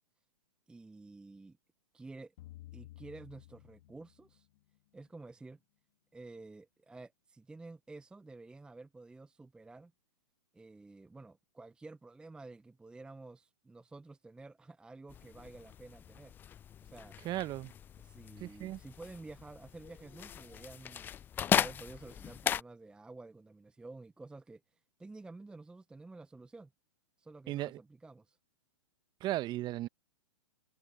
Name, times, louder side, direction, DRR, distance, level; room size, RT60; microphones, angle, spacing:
voice 1, 0.7-1.6 1.9-2.3 2.7-4.5 4.9-5.6 6.1-9.9 10.5-16.3 16.8-17.2 18.0-21.1 21.5-24.6 25.0-26.7 27.2-28.4, right 3 dB, 5° right, 0.7 m, -51 dB
sound 1, 2.4-4.8, left 16 dB, 50° left, 1.8 m, -53 dB
sound 2, 15.1-22.6, left 9 dB, 15° left, 0.3 m, -37 dB
voice 2, 17.2-17.7 18.4-18.8 27.5-27.8 29.2-29.9, right 15 dB, 25° right, 1.0 m, -36 dB
figure-of-eight pair, 115°, 16 cm